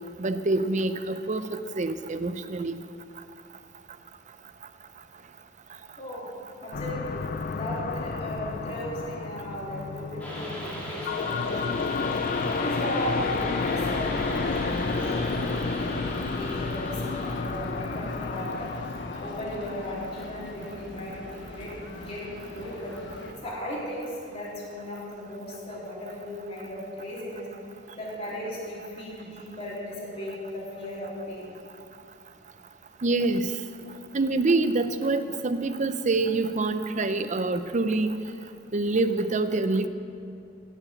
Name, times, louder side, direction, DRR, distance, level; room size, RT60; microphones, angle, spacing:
voice 1, 0.2-2.8 33.0-33.5 34.1-38.2 38.7-39.9, right 2 dB, 40° right, 11 dB, 0.6 m, -26 dB
voice 2, 6.6-11.9 12.5-18.7 19.2-21.7 22.0-23.0 23.4-27.5 27.9-31.6, left 1 dB, 30° left, -9 dB, 3.9 m, -36 dB
sound 1, 6.7-20.5, left 4 dB, 50° left, 0.5 m, -31 dB
sound 2, 10.2-17.4, equal, 10° left, 2.7 m, -37 dB
sound 3, 11.2-23.3, left 1 dB, 70° left, 1.4 m, -41 dB
17.0 x 7.0 x 7.1 m, 2.6 s
head